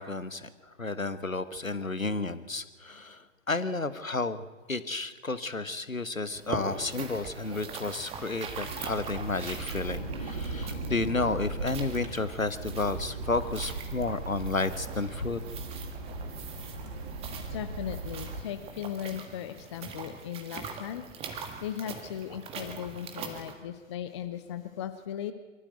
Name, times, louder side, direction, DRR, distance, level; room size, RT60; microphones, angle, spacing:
voice 1, 0.0-15.4, left 3 dB, 90° left, 14 dB, 1.2 m, -32 dB
sound 1, 6.4-23.5, right 5 dB, 15° right, 1.6 m, -42 dB
sound 2, 8.5-18.4, right 2 dB, 40° right, 4.0 m, -38 dB
voice 2, 17.5-25.3, left 10 dB, 20° left, 9 dB, 0.6 m, -38 dB
23.5 x 13.5 x 8.1 m, 1.4 s
figure-of-eight pair, 125°, 39 cm